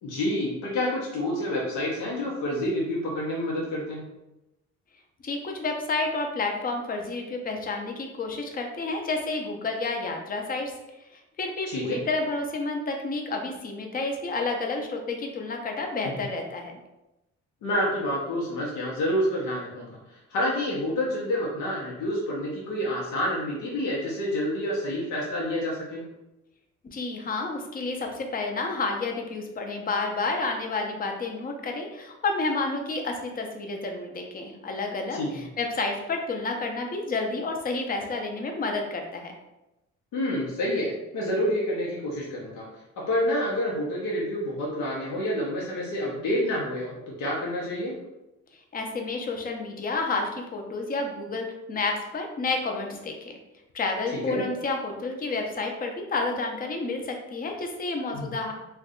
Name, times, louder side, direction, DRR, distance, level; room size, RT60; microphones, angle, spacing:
voice 1, 0.0-4.0 11.7-12.0 17.6-26.0 35.1-35.3 40.1-42.7 43.0-48.0 54.1-54.4 58.1-58.3, left 1 dB, 85° left, -4 dB, 0.7 m, -28 dB
voice 2, 5.2-10.7 11.1-16.7 26.9-39.3 48.7-53.3 53.7-58.5, left 3 dB, 30° left, 3 dB, 0.5 m, -30 dB
2.6 x 2.2 x 3.7 m, 0.95 s
cardioid pair, 90°, 30 cm